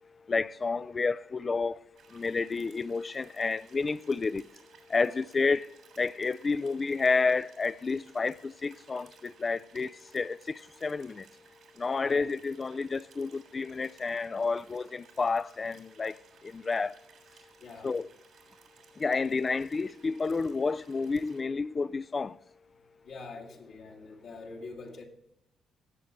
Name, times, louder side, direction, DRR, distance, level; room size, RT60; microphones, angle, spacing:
voice 1, 0.3-1.8 2.1-4.5 4.9-5.7 6.0-11.3 11.8-16.2 16.4-16.9 17.8-18.1 19.0-22.4, left 4 dB, 30° left, 0.4 m, -30 dB
sound 1, 2.0-21.4, right 7 dB, 75° right, 2.9 m, -60 dB
voice 2, 17.6-18.0 23.0-25.0, left 3 dB, 75° left, 2.2 m, -45 dB
17.5 x 7.1 x 3.2 m
cardioid pair, 90°, 0 cm